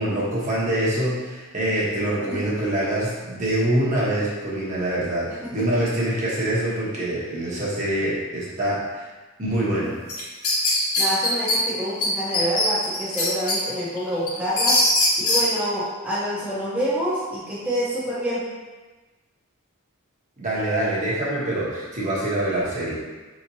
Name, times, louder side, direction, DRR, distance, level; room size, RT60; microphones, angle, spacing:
voice 1, 0.0-9.1 9.4-9.9 20.4-23.0, right 1 dB, 35° right, -7 dB, 1.0 m, -25 dB
sound 1, 10.1-11.6 12.0-12.1 12.3-13.6 14.0-15.4, left 2 dB, 80° left, 1.0 m, -20 dB
voice 2, 11.0-14.8 15.2-18.4, equal, 5° right, -11 dB, 0.8 m, -27 dB
4.8 x 3.0 x 2.7 m, 1.2 s
head